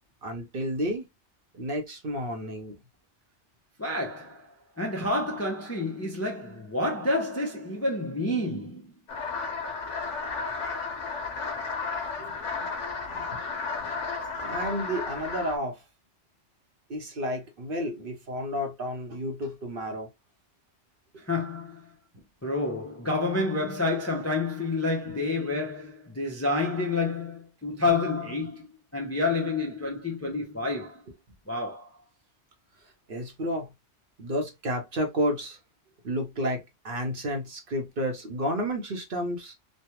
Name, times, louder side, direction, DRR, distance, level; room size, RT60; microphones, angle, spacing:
voice 1, 0.2-1.1 1.5-2.8 12.2-12.7 13.1-13.3 14.4-15.8 16.9-20.1 33.1-33.7 34.2-35.6 36.0-39.5, equal, 50° right, 0.9 m, -31 dB
voice 2, 3.8-8.9 21.2-21.9 22.4-28.6 28.9-31.0 31.5-31.9, left 2 dB, 20° left, 0.4 m, -29 dB
sound 1, 9.1-15.6, left 4 dB, 75° left, 1.2 m, -33 dB
3.2 x 2.2 x 2.9 m
omnidirectional pair, 1.3 m